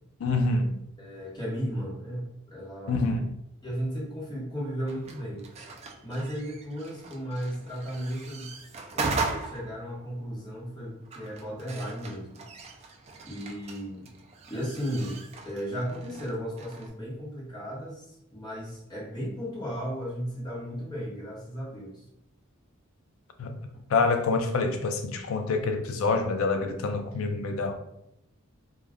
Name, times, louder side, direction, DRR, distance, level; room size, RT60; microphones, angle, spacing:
voice 1, 0.2-0.7 2.9-3.3 23.4-23.5 23.9-27.7, left 3 dB, 70° left, 0.4 m, -26 dB
voice 2, 1.0-2.9 3.6-5.5 6.0-8.5 8.9-12.4 13.3-14.0 14.5-15.2 15.4-18.0 18.3-22.0, equal, 20° left, 0.9 m, -35 dB
sound 1, 4.9-16.9, right 3 dB, 30° right, 0.3 m, -39 dB
2.3 x 2.1 x 3.4 m
head